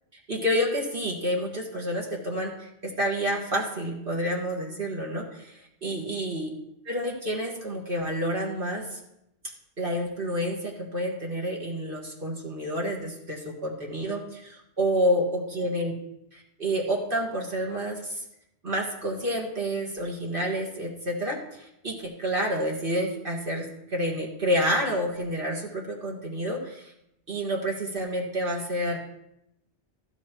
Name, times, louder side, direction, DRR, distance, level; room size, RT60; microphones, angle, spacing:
voice 1, 0.3-6.5 6.9-9.0 9.8-15.9 16.3-18.2 18.6-26.9 27.3-29.0, equal, 50° right, -2 dB, 1.9 m, -29 dB
15.0 x 7.8 x 3.0 m, 0.82 s
omnidirectional pair, 1.2 m